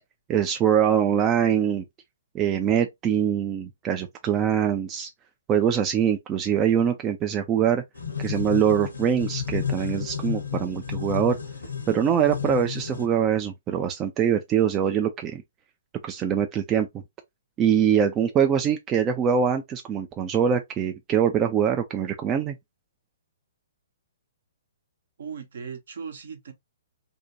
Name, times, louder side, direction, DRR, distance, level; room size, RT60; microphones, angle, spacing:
voice 1, 0.3-1.8 2.3-5.1 5.5-7.8 8.2-11.4 11.9-15.4 16.0-16.9 17.6-22.5, right 8 dB, 20° right, 0.3 m, -23 dB
sound 1, 8.0-13.1, left 7 dB, 75° left, 0.7 m, -32 dB
voice 2, 25.2-26.5, right 6 dB, 60° right, 0.7 m, -37 dB
2.6 x 2.1 x 2.6 m
figure-of-eight pair, 120°, 0 cm